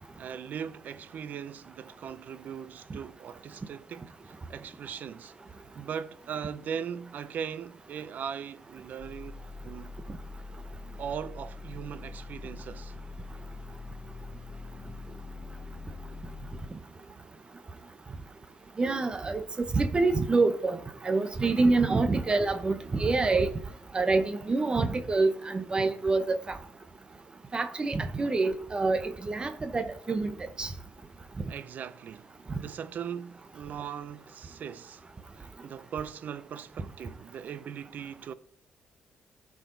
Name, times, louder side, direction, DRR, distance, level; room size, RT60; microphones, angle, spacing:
voice 1, 0.2-5.3 5.7-10.0 11.0-12.9 31.5-35.0 35.4-38.3, right 8 dB, 60° right, 0.6 m, -39 dB
sound 1, 9.0-16.7, left 3 dB, 45° left, 0.7 m, -43 dB
voice 2, 18.8-20.8 21.0-23.5 23.9-26.6 27.5-30.3 30.6-30.7 31.4-31.5, right 3 dB, 30° right, 0.9 m, -26 dB
14.5 x 4.9 x 3.9 m
cardioid pair, 80°, 3 cm